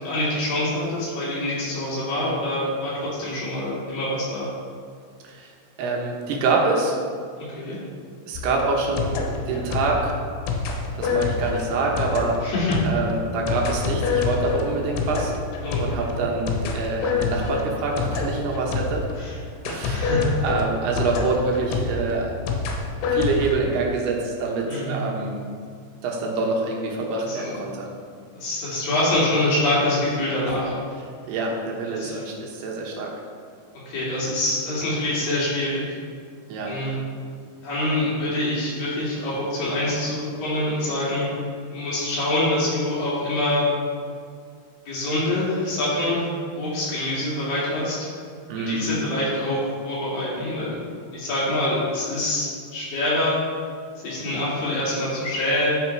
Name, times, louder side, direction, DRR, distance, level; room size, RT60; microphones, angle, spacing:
voice 1, 0.0-4.5 7.4-7.8 12.4-12.8 15.6-16.1 19.2-19.4 19.8-20.3 24.7-25.0 27.3-27.5 28.3-30.7 31.9-32.2 33.7-35.8 36.7-37.0 37.6-41.3 41.7-43.7 44.9-48.1 48.5-50.8 51.1-53.4 54.0-55.7, left 1 dB, 55° left, -8 dB, 4.0 m, -25 dB
voice 2, 5.8-7.0 8.3-9.1 9.5-10.1 11.0-12.4 12.8-15.3 15.8-19.1 19.7-20.1 20.4-22.3 23.1-25.4 26.0-27.9 30.4-30.5 31.3-33.1 36.5-36.7 48.5-48.9, right 3 dB, 70° right, -1 dB, 3.0 m, -26 dB
sound 1, 8.3-19.2 19.7-23.6, left 4 dB, 80° left, 3.4 m, -27 dB
13.0 x 5.8 x 4.6 m, 2.1 s
omnidirectional pair, 5.3 m